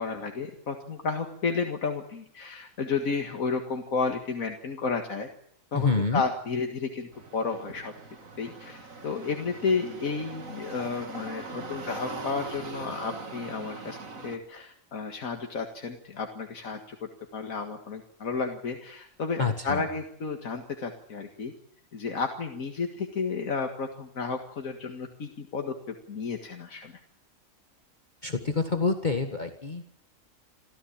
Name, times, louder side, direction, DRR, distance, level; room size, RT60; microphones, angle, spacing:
voice 1, 0.0-5.3 5.7-7.9 8.4-14.0 14.2-21.5 21.9-26.9, left 4 dB, 85° left, 4 dB, 2.2 m, -32 dB
voice 2, 5.7-6.2 19.4-19.8 28.2-29.9, left 4 dB, 35° left, 6 dB, 1.8 m, -27 dB
sound 1, 7.1-14.4, right 3 dB, 80° right, 2.9 m, -41 dB
27.5 x 15.0 x 8.7 m, 0.70 s
omnidirectional pair, 1.4 m